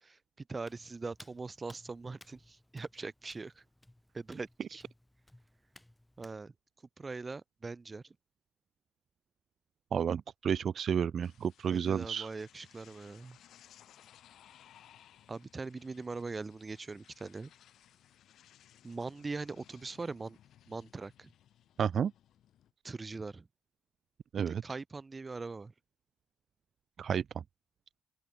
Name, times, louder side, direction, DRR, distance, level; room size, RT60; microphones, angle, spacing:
voice 1, 0.5-3.6 4.1-4.8 6.2-6.5 7.0-8.0 11.7-13.4 15.3-17.5 18.8-20.4 20.7-21.3 22.8-23.5 24.5-25.7, right 3 dB, 25° right, 2.9 m, -41 dB
Hands, 0.6-6.4, left 1 dB, 5° left, 5.2 m, -60 dB
voice 2, 9.9-12.3 21.8-22.1 24.3-24.6 27.0-27.4, right 7 dB, 55° right, 0.7 m, -31 dB
sound 1, 11.2-22.7, left 11 dB, 75° left, 3.4 m, -61 dB
open air
cardioid pair, 90°, 0 cm